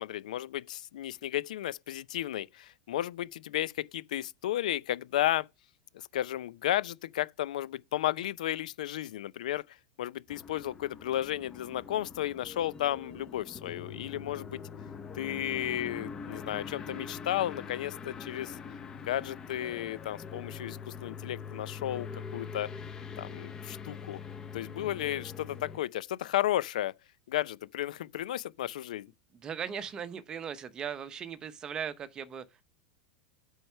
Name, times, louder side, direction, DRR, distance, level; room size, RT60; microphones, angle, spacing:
voice 1, 0.0-5.5 5.9-9.6 10.0-14.6 15.1-18.6 19.0-22.7 23.2-24.2 24.5-26.9 27.3-29.1, left 13 dB, 85° left, 0.5 m, -33 dB
sound 1, 10.3-25.8, left 6 dB, 15° left, 0.7 m, -43 dB
voice 2, 29.3-32.6, right 7 dB, 20° right, 0.8 m, -38 dB
7.9 x 4.7 x 5.5 m
supercardioid pair, 165°, 4 cm